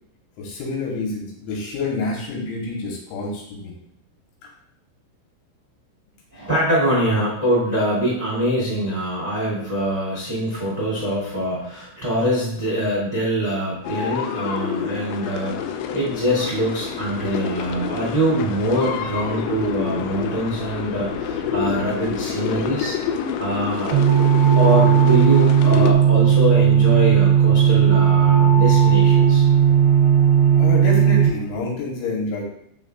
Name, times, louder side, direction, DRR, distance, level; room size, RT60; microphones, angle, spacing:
voice 1, 0.4-3.8 4.4-4.5 30.6-32.4, left 3 dB, 75° left, -2 dB, 3.3 m, -28 dB
voice 2, 6.3-15.7 15.9-23.0 23.4-24.0 24.5-29.4 30.5-30.6, equal, 30° right, -7 dB, 0.7 m, -23 dB
sound 1, 13.8-25.9, left 8 dB, 90° left, 2.6 m, -28 dB
sound 2, 14.6-31.6, equal, 50° left, 3.1 m, -40 dB
sound 3, 23.9-31.3, right 8 dB, 85° right, 2.3 m, -15 dB
7.1 x 6.7 x 2.4 m, 0.73 s
omnidirectional pair, 5.9 m